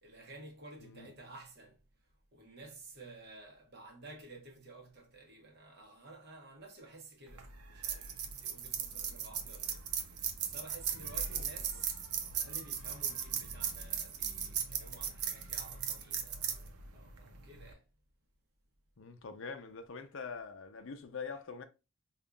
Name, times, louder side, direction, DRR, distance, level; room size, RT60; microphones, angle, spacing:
voice 1, 0.0-1.8 2.3-17.8, right 2 dB, 45° right, 1.0 m, -53 dB
sound 1, 7.3-17.7, right 7 dB, 85° right, 0.7 m, -38 dB
voice 2, 19.0-21.6, left 5 dB, 55° left, 0.5 m, -44 dB
5.2 x 2.4 x 2.3 m
head